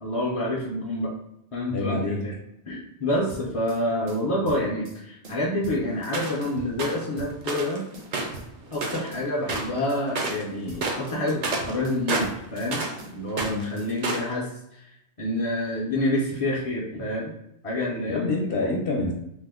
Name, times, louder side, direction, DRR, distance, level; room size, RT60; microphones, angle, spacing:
voice 1, 0.0-1.1 1.5-2.3 2.7-7.8 8.7-12.8 13.1-17.3 17.6-18.3, left 1 dB, 50° left, -4 dB, 0.4 m, -28 dB
voice 2, 1.7-2.2 13.4-13.7 18.1-19.1, left 2 dB, 70° left, -3 dB, 0.8 m, -27 dB
sound 1, 3.3-3.8 4.1-5.0 5.2-6.2 6.4-7.7 7.9-8.8 9.1-10.0 10.3-11.2 11.5-12.7 13.0-13.9, right 2 dB, 65° right, 1.0 m, -43 dB
sound 2, 6.1-6.4 6.8-7.0 7.4-7.8 8.1-9.2 9.5-9.8 10.1-10.4 10.7-13.0 13.3-14.3, right 3 dB, 50° right, 0.5 m, -29 dB
2.9 x 2.0 x 3.5 m, 0.79 s
omnidirectional pair, 1.2 m